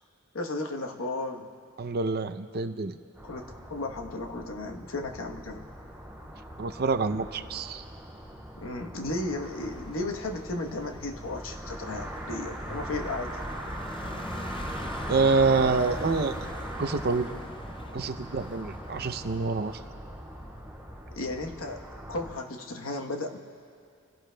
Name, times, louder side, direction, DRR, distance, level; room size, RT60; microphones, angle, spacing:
voice 1, 0.3-1.5 3.2-5.7 8.6-13.3 21.1-23.4, left 2 dB, 75° left, 3 dB, 1.1 m, -34 dB
voice 2, 1.8-3.0 6.6-7.8 15.1-17.4 17.9-19.8, right 4 dB, 50° right, 10 dB, 0.6 m, -27 dB
sound 1, 3.2-22.3, equal, 5° right, 4.0 m, -40 dB
sound 2, 9.4-19.8, left 2 dB, 25° left, 0.5 m, -46 dB
28.5 x 16.5 x 2.2 m, 2.4 s
head